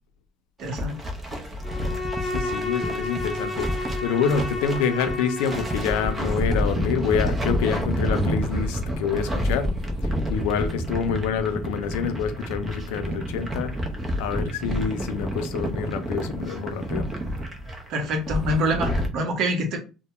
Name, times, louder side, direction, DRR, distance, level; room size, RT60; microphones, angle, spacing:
sound 1, 0.6-19.1, equal, 25° right, 0.6 m, -29 dB
voice 1, 0.6-1.0 17.9-19.8, right 1 dB, 65° right, 0.8 m, -25 dB
Bowed string instrument, 1.6-6.4, left 2 dB, 20° left, 0.6 m, -32 dB
voice 2, 2.2-9.7 10.0-13.7 14.2-17.1, left 7 dB, 85° left, 0.4 m, -27 dB
2.2 x 2.1 x 2.8 m
supercardioid pair, 95°, 0 cm